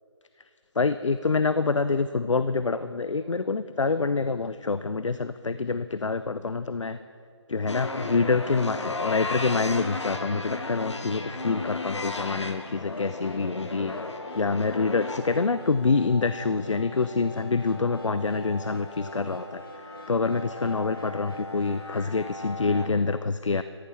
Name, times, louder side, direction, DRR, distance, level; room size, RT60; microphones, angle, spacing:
voice 1, 0.8-7.0 7.5-13.9 14.3-19.6 20.1-23.6, left 4 dB, 85° left, 13 dB, 0.5 m, -26 dB
sound 1, 7.7-22.9, left 2 dB, 70° left, 1.3 m, -36 dB
sound 2, 10.4-22.9, equal, 50° left, 1.5 m, -48 dB
13.5 x 10.0 x 5.9 m, 2.5 s
figure-of-eight pair, 160°, 15 cm